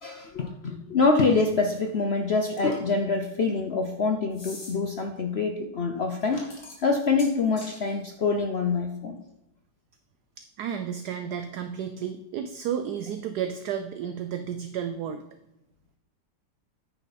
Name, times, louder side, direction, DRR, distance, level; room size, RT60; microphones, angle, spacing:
voice 1, 0.0-9.2, left 4 dB, 60° left, 4 dB, 0.6 m, -25 dB
sound 1, 2.6-3.0 4.3-4.7 6.2-7.8, left 2 dB, 45° left, 2.6 m, -44 dB
voice 2, 10.6-15.3, right 8 dB, 70° right, 8 dB, 1.1 m, -32 dB
10.0 x 9.0 x 4.1 m, 0.86 s
omnidirectional pair, 2.0 m